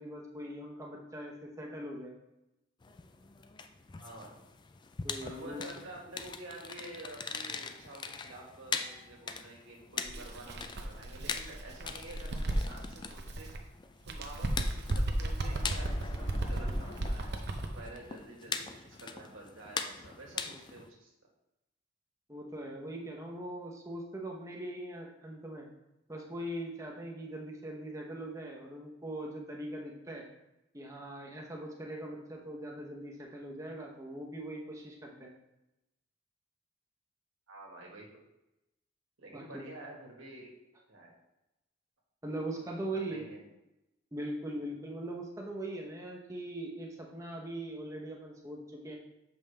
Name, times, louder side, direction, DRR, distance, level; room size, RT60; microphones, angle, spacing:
voice 1, 0.0-2.2 5.0-5.7 22.3-25.7 26.1-30.2 30.7-35.3 39.3-39.6 42.2-43.3 44.1-49.0, right 1 dB, 15° right, -1 dB, 1.0 m, -41 dB
sound 1, 2.8-20.9, left 5 dB, 25° left, 0.3 m, -42 dB
voice 2, 4.0-4.4 5.2-13.6 14.1-21.1 37.5-38.1 39.2-40.5 40.9-41.1 43.1-43.5, right 1 dB, 90° right, -1 dB, 1.7 m, -49 dB
Bird, 10.1-13.6 14.0-17.8, right 1 dB, 55° right, 0.7 m, -35 dB
7.1 x 5.4 x 3.4 m, 0.93 s
head